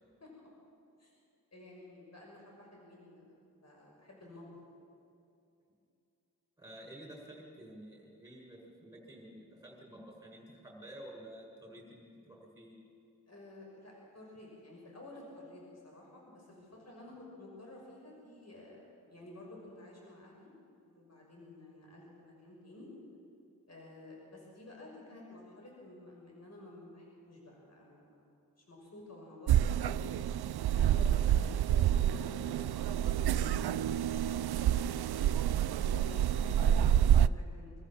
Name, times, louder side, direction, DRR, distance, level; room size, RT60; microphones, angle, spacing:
voice 1, 1.5-3.4 3.6-4.5 13.3-20.5 20.9-22.9 23.7-28.2 28.6-30.2 30.7-34.8 35.1-37.8, left 2 dB, 40° left, -2 dB, 6.1 m, -52 dB
voice 2, 6.6-12.8, right 1 dB, 10° right, -1 dB, 6.9 m, -51 dB
sound 1, 29.5-37.3, right 10 dB, 75° right, 0.5 m, -28 dB
25.0 x 14.0 x 7.5 m, 2.6 s
cardioid pair, 80°, 38 cm